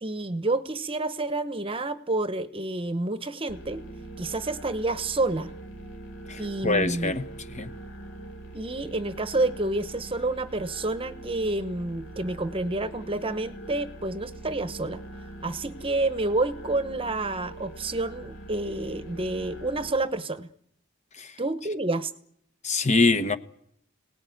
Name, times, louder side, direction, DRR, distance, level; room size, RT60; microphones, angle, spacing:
voice 1, 0.0-3.8 4.2-5.5 6.4-7.1 8.5-15.0 15.4-20.5 21.4-22.1, right 2 dB, 25° right, 1.0 m, -29 dB
sound 1, 3.5-19.9, right 2 dB, 70° left, 3.7 m, -43 dB
voice 2, 6.3-7.7 21.2-21.3 22.6-23.4, left 3 dB, 35° left, 1.1 m, -24 dB
24.0 x 18.5 x 9.4 m
head